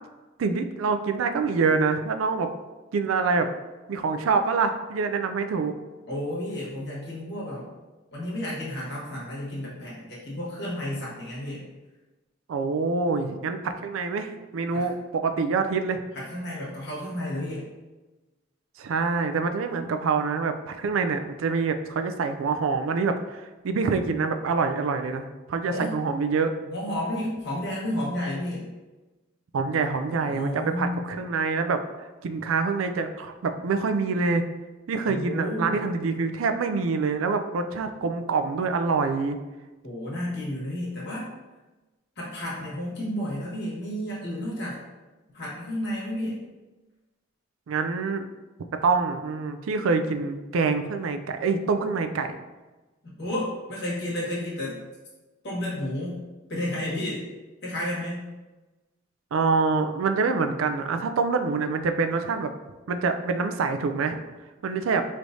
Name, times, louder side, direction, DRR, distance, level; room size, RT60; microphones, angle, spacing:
voice 1, 0.4-2.5 2.9-3.5 3.9-5.7 12.5-16.0 18.8-26.5 29.5-34.4 34.9-39.4 47.7-48.3 48.8-52.4 59.3-62.5 62.9-64.2 64.6-65.0, right 4 dB, 90° right, 7 dB, 0.4 m, -26 dB
voice 2, 6.1-7.7 8.1-11.6 14.7-14.9 16.1-17.6 25.7-26.0 26.7-28.7 30.3-31.0 35.1-35.8 39.8-41.3 42.2-44.8 45.3-46.4 53.0-54.8 55.4-56.2 56.5-57.3 57.6-58.3, left 1 dB, 55° left, -5 dB, 1.5 m, -31 dB
4.7 x 3.2 x 2.6 m, 1.1 s
head